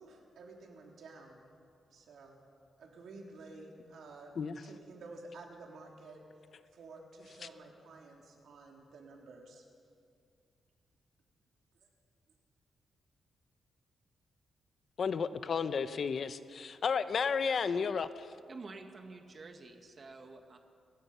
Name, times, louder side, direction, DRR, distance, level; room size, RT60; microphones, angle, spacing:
voice 1, 0.0-1.4 1.9-2.4 2.8-4.3 4.6-6.2 6.7-9.6 11.7-11.9, right 3 dB, 75° right, 0 dB, 3.6 m, -52 dB
voice 2, 15.0-18.3, left 6 dB, 50° left, 12 dB, 0.8 m, -32 dB
voice 3, 18.5-20.6, right 3 dB, 40° right, 4 dB, 1.8 m, -49 dB
29.0 x 16.5 x 5.6 m, 2.3 s
wide cardioid pair, 130°, 0 cm